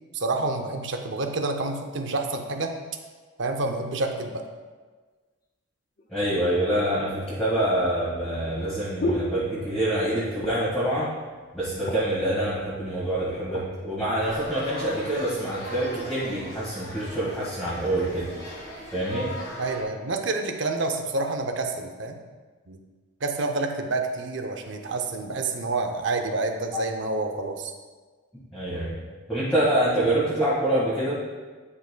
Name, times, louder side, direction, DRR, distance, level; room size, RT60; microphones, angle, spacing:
voice 1, 0.1-2.7 3.4-4.5 19.6-22.2 22.7-22.8 23.2-27.7, right 3 dB, 55° right, 5 dB, 0.6 m, -28 dB
sound 1, 6.0-6.1 6.9-10.0 10.3-10.8 11.2-11.3 11.6-12.3 12.9-13.7 14.3-14.5, left 1 dB, 40° left, 0.7 m, -34 dB
voice 2, 6.1-11.1 11.5-18.3 18.9-19.3 26.7-26.8 28.5-28.9 29.3-31.2, right 1 dB, 5° left, -12 dB, 1.6 m, -26 dB
sound 2, 14.2-19.8, left 1 dB, 85° left, 1.6 m, -40 dB
11.0 x 5.1 x 2.2 m, 1.4 s
head